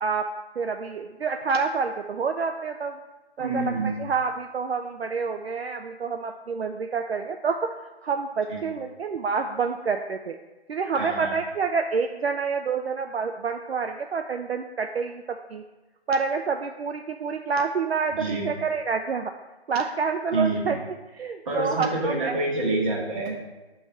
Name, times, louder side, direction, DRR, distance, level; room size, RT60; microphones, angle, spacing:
voice 1, 0.6-3.0 3.4-7.7 8.0-10.4 10.7-15.6 16.1-19.3 19.7-20.8 21.2-22.4, right 5 dB, 70° right, 5 dB, 0.5 m, -28 dB
voice 2, 3.4-3.9 8.5-8.6 10.9-11.3 18.2-18.5 20.3-20.8 21.4-23.4, right 2 dB, 30° right, -4 dB, 1.4 m, -27 dB
6.5 x 3.1 x 5.7 m, 1.1 s
figure-of-eight pair, 145°, 33 cm